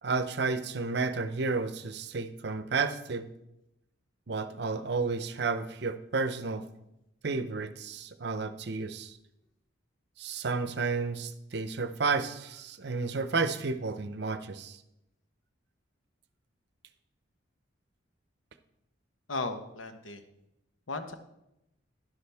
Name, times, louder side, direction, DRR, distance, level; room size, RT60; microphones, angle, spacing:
voice 1, 0.0-3.3 4.3-6.6 7.2-9.2 10.2-14.8, right 4 dB, 55° right, 11 dB, 0.6 m, -31 dB
voice 2, 19.3-20.2 20.9-21.1, left 3 dB, 80° left, 7 dB, 1.0 m, -35 dB
11.5 x 11.0 x 3.4 m, 0.87 s
head